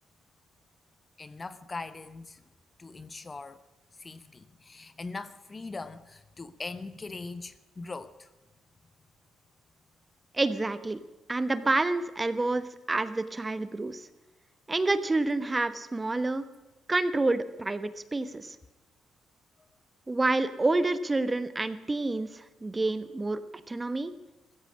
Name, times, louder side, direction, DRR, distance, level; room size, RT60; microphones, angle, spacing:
voice 1, 1.2-2.4 2.8-3.6 4.0-8.3, left 3 dB, 30° left, 1.0 m, -41 dB
voice 2, 10.3-11.0 11.3-14.1 14.7-16.4 16.9-18.6 20.1-23.4 23.7-24.1, right 2 dB, 20° right, 1.2 m, -28 dB
15.5 x 15.0 x 6.3 m
cardioid pair, 90°, 0 cm